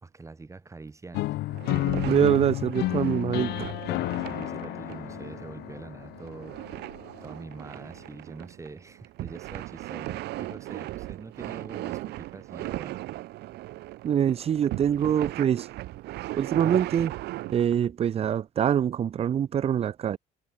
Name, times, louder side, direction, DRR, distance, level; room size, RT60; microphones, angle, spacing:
voice 1, 0.0-1.4 4.3-6.6 7.2-13.0, right 3 dB, 15° right, 2.0 m, -44 dB
sound 1, 1.1-7.1, left 17 dB, 80° left, 0.9 m, -31 dB
sound 2, 1.5-17.9, right 17 dB, 80° right, 1.7 m, -38 dB
voice 2, 2.0-3.7 14.0-15.7 16.3-17.1 17.5-20.2, right 9 dB, 35° right, 0.5 m, -24 dB
cardioid pair, 110°, 17 cm